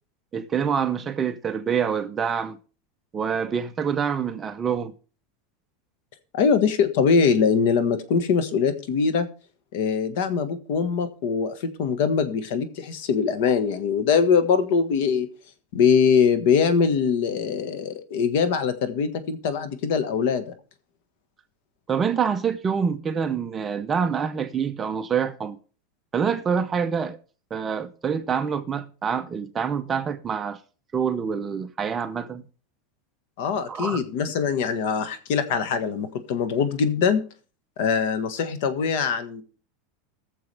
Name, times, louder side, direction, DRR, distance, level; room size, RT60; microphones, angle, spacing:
voice 1, 0.3-2.6 3.1-4.9 21.9-25.6 26.1-27.2 27.5-30.6 30.9-32.4 33.7-34.0, right 7 dB, 20° right, 0.7 m, -26 dB
voice 2, 6.3-9.3 9.7-15.3 15.7-20.4 33.4-37.2 37.8-39.4, left 6 dB, 60° left, 1.4 m, -22 dB
19.5 x 6.9 x 3.3 m
supercardioid pair, 160°, 0 cm